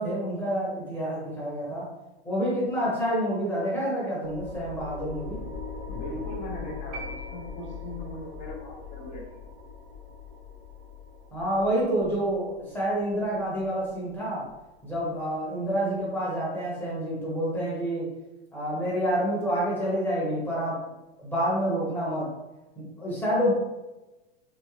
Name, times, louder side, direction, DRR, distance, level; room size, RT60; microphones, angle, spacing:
voice 1, 0.0-1.9 2.2-5.4 11.3-14.5 14.8-18.1 18.5-20.8 21.2-22.3 22.8-23.5, equal, 5° left, -7 dB, 1.0 m, -28 dB
sound 1, 4.2-15.3, left 5 dB, 45° right, 1.3 m, -41 dB
voice 2, 5.9-9.2, left 1 dB, 20° left, -1 dB, 0.7 m, -39 dB
sound 2, 6.9-8.2, right 2 dB, 25° right, 0.5 m, -42 dB
3.7 x 3.6 x 3.2 m, 1.0 s
supercardioid pair, 165°, 33 cm